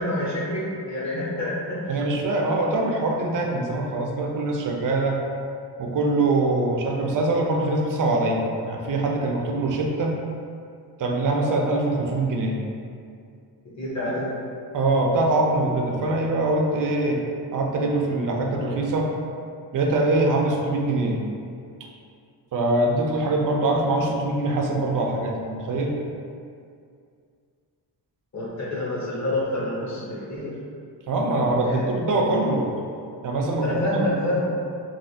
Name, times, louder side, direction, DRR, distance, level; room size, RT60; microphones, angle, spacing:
voice 1, 0.0-2.0 13.8-14.3 28.3-30.5 31.6-31.9 33.6-34.5, left 1 dB, 40° left, -7 dB, 0.9 m, -27 dB
voice 2, 1.9-5.2 5.8-10.1 11.0-12.6 14.7-17.2 17.5-19.1 19.7-21.2 22.5-26.0 31.1-32.7 33.2-34.0, right 2 dB, 50° right, 0 dB, 0.5 m, -23 dB
3.2 x 2.6 x 2.7 m, 2.3 s
wide cardioid pair, 145°, 42 cm